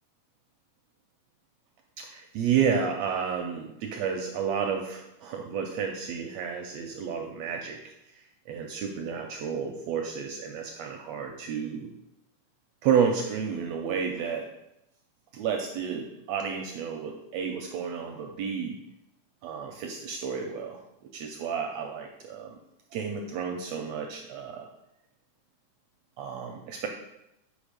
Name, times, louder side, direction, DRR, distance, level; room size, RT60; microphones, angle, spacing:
voice 1, 2.0-7.9 8.5-11.9 12.8-14.5 15.3-18.8 19.4-20.8 21.1-22.6 22.9-24.7 26.2-26.9, right 7 dB, 80° right, 3 dB, 1.6 m, -31 dB
6.2 x 5.2 x 5.1 m, 0.87 s
omnidirectional pair, 3.7 m